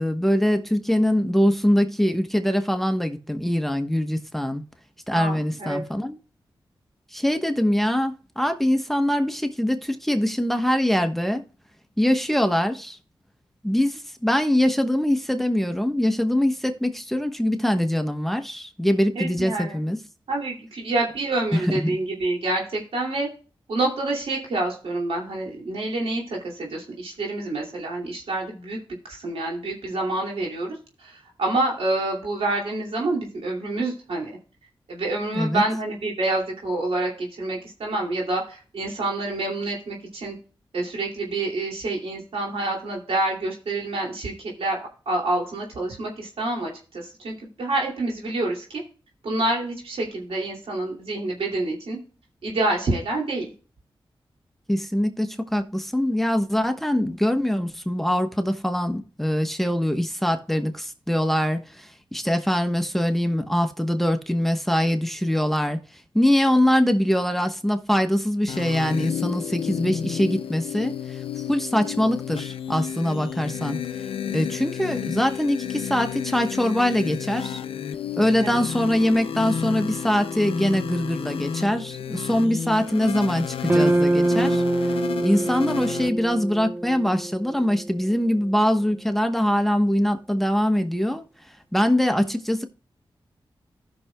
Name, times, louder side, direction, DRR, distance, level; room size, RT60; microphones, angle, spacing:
voice 1, 0.0-4.6 5.1-6.2 7.1-11.4 12.0-13.0 13.6-20.0 21.5-21.9 35.3-35.6 54.7-65.8 66.1-71.2 71.5-73.8 74.3-77.6 78.2-84.6 85.2-91.2 91.7-92.7, equal, 5° left, 1.1 m, -23 dB
voice 2, 5.1-5.8 19.2-19.8 20.3-23.3 23.7-28.8 29.1-34.3 34.9-40.4 40.7-44.3 44.6-44.8 45.1-48.8 49.2-52.0 52.4-53.5 78.4-78.6, right 2 dB, 85° right, 2.6 m, -27 dB
sound 1, 68.5-86.1, left 8 dB, 80° left, 0.4 m, -31 dB
sound 2, 83.7-88.0, right 1 dB, 20° right, 0.5 m, -24 dB
15.5 x 6.2 x 2.3 m
cardioid pair, 50°, 9 cm